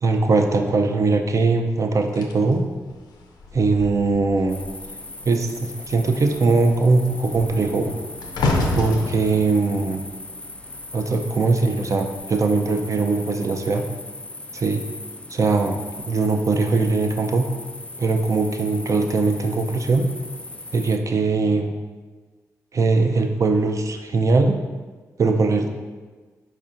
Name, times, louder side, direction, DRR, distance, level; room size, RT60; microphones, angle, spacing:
voice 1, 0.0-2.6 3.5-4.6 5.2-7.9 8.8-10.0 10.9-13.8 14.5-14.8 15.3-15.8 16.1-17.5 18.0-20.1 20.7-21.7 22.7-24.6 25.2-25.7, right 3 dB, 50° right, 4 dB, 0.5 m, -20 dB
sound 1, 2.1-4.9 5.2-5.5 5.8-11.2 11.9-12.2, left 2 dB, 85° left, 0.5 m, -29 dB
sound 2, 4.5-21.0, left 2 dB, 15° left, 0.3 m, -38 dB
4.3 x 4.2 x 2.5 m, 1.4 s
supercardioid pair, 45°, 7 cm